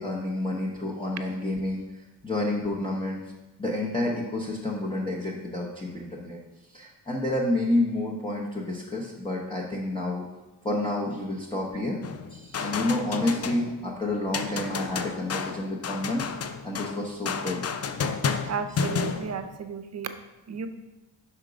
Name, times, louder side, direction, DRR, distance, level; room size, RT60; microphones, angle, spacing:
voice 1, 0.0-1.8 2.2-3.2 3.6-6.4 6.7-10.2 10.6-12.0 12.3-16.2 16.6-17.6, left 1 dB, 10° left, -4 dB, 0.8 m, -29 dB
sound 1, 12.0-13.9 14.3-19.6, left 5 dB, 40° left, 0.4 m, -31 dB
voice 2, 18.5-20.1 20.5-20.7, right 6 dB, 40° right, 9 dB, 0.5 m, -33 dB
5.8 x 3.7 x 5.0 m, 1.1 s
cardioid pair, 85°, 42 cm